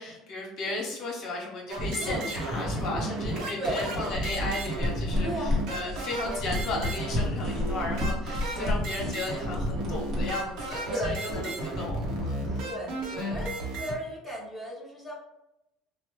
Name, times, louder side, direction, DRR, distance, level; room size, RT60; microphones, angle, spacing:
voice 1, 0.0-12.7 13.1-13.4, left 2 dB, 50° left, -1 dB, 0.8 m, -35 dB
sound 1, 1.7-13.9, right 1 dB, 65° right, 0.8 m, -33 dB
voice 2, 3.6-3.9 5.2-5.5 5.8-6.0 8.4-8.7 10.9-11.8 12.4-12.9 13.3-15.1, right 1 dB, 5° right, -4 dB, 0.9 m, -35 dB
sound 2, 4.1-10.8, left 1 dB, 40° right, 0.9 m, -32 dB
3.1 x 2.1 x 3.0 m, 0.86 s
cardioid pair, 135°, 0 cm